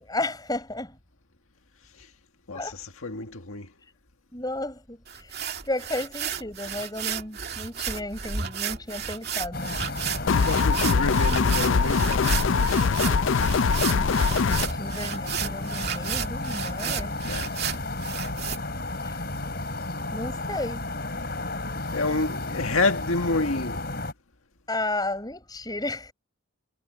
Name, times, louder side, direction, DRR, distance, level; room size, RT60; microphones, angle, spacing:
voice 1, 0.1-1.0 2.5-2.7 4.3-5.3 5.7-9.8 13.9-17.2 19.0-19.2 20.1-20.9 24.7-26.1, left 2 dB, 20° left, 7.3 m, -33 dB
voice 2, 2.5-3.7 10.2-12.3 17.2-17.5 21.9-23.8, left 3 dB, 80° left, 1.8 m, -28 dB
sound 1, 5.1-18.6, right 7 dB, 50° right, 2.4 m, -33 dB
sound 2, 9.5-24.1, left 2 dB, 45° left, 5.3 m, -33 dB
sound 3, 10.3-14.7, left 5 dB, 65° left, 0.4 m, -22 dB
head